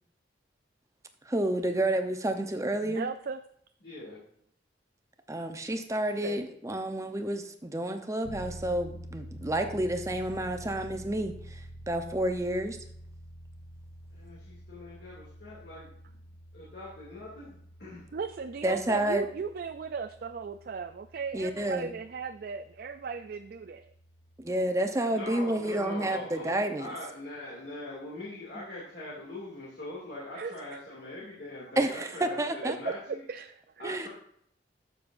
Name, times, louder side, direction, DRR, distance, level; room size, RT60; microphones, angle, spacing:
voice 1, 1.3-3.1 5.3-12.8 18.6-19.2 21.3-21.9 24.4-26.9 28.6-28.7 31.8-32.8 33.8-34.1, right 1 dB, 15° right, 7 dB, 0.7 m, -30 dB
voice 2, 2.8-3.4 6.2-6.4 18.1-23.9 30.3-30.8 32.6-32.9 33.3-34.1, right 5 dB, 55° right, 8 dB, 0.4 m, -37 dB
voice 3, 3.8-4.2 14.1-16.2 16.5-18.0 25.1-33.2 33.8-34.1, left 1 dB, 70° left, -7 dB, 2.4 m, -42 dB
sound 1, 8.2-24.6, equal, 90° right, 1.0 m, -48 dB
11.5 x 7.0 x 2.6 m, 0.67 s
head